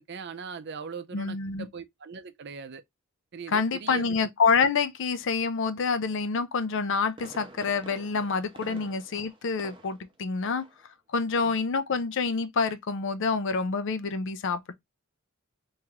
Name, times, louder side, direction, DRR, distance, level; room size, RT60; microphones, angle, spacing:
voice 1, 0.0-2.8 3.3-4.2 8.7-8.8 11.4-11.6, right 5 dB, 55° right, 0.5 m, -40 dB
voice 2, 1.1-1.7 3.5-10.6 11.1-14.7, left 5 dB, 65° left, 0.5 m, -27 dB
Fireworks, 6.7-10.1 10.5-10.8 11.2-11.3, right 2 dB, 25° right, 0.7 m, -48 dB
3.1 x 2.9 x 3.5 m
head